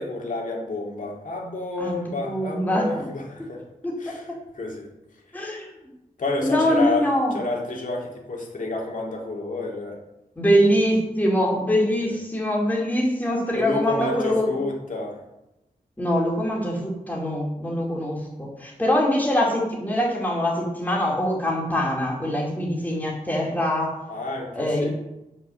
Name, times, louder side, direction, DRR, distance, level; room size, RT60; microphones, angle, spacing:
voice 1, 0.0-3.6 4.0-4.9 6.2-7.1 7.3-10.0 12.0-12.1 13.5-15.2 24.1-24.9, left 2 dB, 70° left, -1 dB, 2.5 m, -29 dB
voice 2, 1.8-2.9 3.4-3.5 3.8-4.4 5.3-5.7 6.4-7.4 10.4-14.4 16.0-24.0 24.6-24.9, equal, 10° left, -3 dB, 2.6 m, -23 dB
9.6 x 5.6 x 6.3 m, 0.93 s
wide cardioid pair, 125°, 14 cm